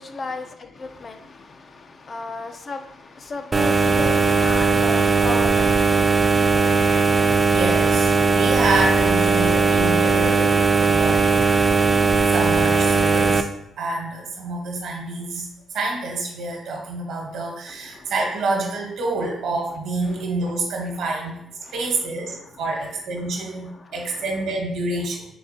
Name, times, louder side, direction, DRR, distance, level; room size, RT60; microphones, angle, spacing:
voice 1, 0.0-6.3 17.7-18.1 20.0-20.2 21.6-22.9 23.2-24.2, left 3 dB, 40° left, 0.4 m, -36 dB
sound 1, 3.5-13.4, right 4 dB, 30° right, 0.3 m, -18 dB
voice 2, 7.4-11.7 12.3-13.5 13.8-15.5 15.7-21.4 21.7-25.3, right 2 dB, 80° right, 1.1 m, -27 dB
3.8 x 3.4 x 2.7 m
cardioid pair, 90°, 0 cm